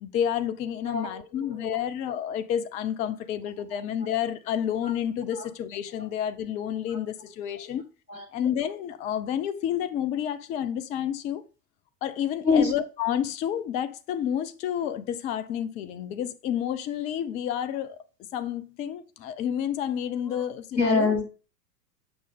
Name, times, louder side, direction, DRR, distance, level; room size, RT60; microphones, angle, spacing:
voice 1, 0.0-7.8 8.3-11.4 12.0-18.0 18.3-21.1, left 9 dB, 15° left, 0.3 m, -30 dB
voice 2, 0.9-1.8 3.7-3.8 4.8-4.9 5.3-5.5 6.9-7.0 7.4-7.7 8.1-8.3 12.4-12.7 20.3-20.4 20.7-21.3, left 4 dB, 90° left, 1.8 m, -26 dB
7.9 x 6.1 x 3.5 m
figure-of-eight pair, 85°, 48 cm